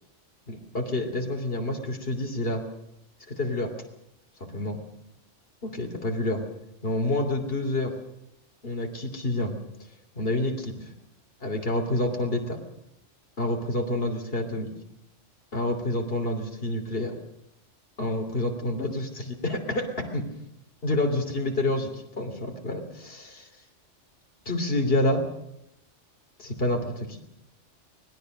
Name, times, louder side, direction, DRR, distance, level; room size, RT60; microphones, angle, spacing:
voice 1, 0.5-2.6 3.3-3.7 4.5-4.8 5.7-6.4 6.8-7.9 8.6-9.5 10.1-10.9 11.4-12.6 13.4-14.7 15.5-17.1 18.0-20.3 20.8-23.5 24.4-25.2 26.4-27.2, left 1 dB, 50° left, 3 dB, 3.1 m, -28 dB
24.5 x 19.0 x 6.5 m, 0.81 s
omnidirectional pair, 1.2 m